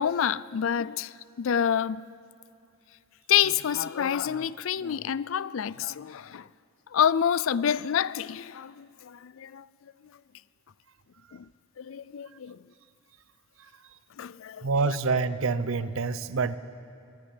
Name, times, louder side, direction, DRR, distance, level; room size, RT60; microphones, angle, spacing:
voice 1, 0.0-2.0 3.3-6.5 6.9-9.7 11.3-11.5 11.8-12.6 14.2-15.0, left 8 dB, 65° left, 0.4 m, -28 dB
voice 2, 14.6-16.6, right 4 dB, 70° right, 0.7 m, -26 dB
17.5 x 16.0 x 9.7 m
head